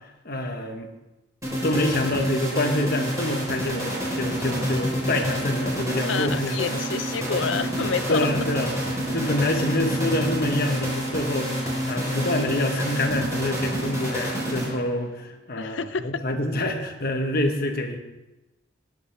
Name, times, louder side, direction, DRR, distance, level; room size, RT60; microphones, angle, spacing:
voice 1, 0.2-0.9 1.6-6.8 8.1-11.5 11.9-15.1 15.5-18.0, left 1 dB, 50° left, 4 dB, 1.3 m, -26 dB
sound 1, 1.4-15.0, equal, 15° right, 4.1 m, -28 dB
voice 2, 6.1-8.3 15.6-16.1, left 5 dB, 65° left, 13 dB, 0.5 m, -28 dB
19.5 x 8.3 x 3.4 m, 1.0 s
head